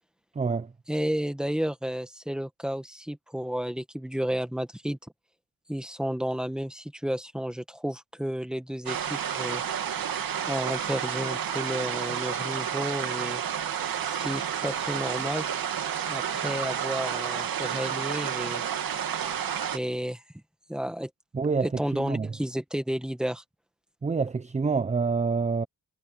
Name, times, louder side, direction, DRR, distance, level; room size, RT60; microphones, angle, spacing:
voice 1, 0.4-0.7 21.3-22.3 24.0-25.7, right 4 dB, 20° right, 0.6 m, -27 dB
voice 2, 0.9-5.0 5.7-9.6 10.4-13.4 14.0-15.5 16.1-18.6 19.7-20.2 20.7-21.1 21.6-23.4, equal, ahead, 1.7 m, -32 dB
sound 1, 8.9-19.8, right 8 dB, 75° right, 2.5 m, -30 dB
wide cardioid pair, 125°, 35 cm